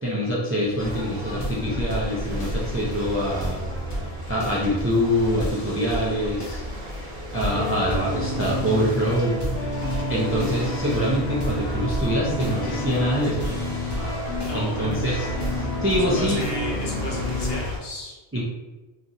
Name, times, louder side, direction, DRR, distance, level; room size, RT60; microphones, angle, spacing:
voice 1, 0.0-3.6 4.3-6.6 7.3-9.4 10.1-13.5 14.5-15.3 15.8-16.4 18.3-18.4, equal, 20° right, -6 dB, 0.3 m, -24 dB
sound 1, 0.6-17.7, left 1 dB, 30° left, 0.5 m, -34 dB
sound 2, 0.8-17.8, equal, 70° right, 1.2 m, -34 dB
sound 3, 7.5-17.6, left 1 dB, 85° left, 0.9 m, -31 dB
voice 2, 14.4-15.3 15.7-15.8 16.1-18.2, left 1 dB, 65° left, -3 dB, 1.0 m, -34 dB
2.9 x 2.5 x 2.6 m, 1.2 s
omnidirectional pair, 1.1 m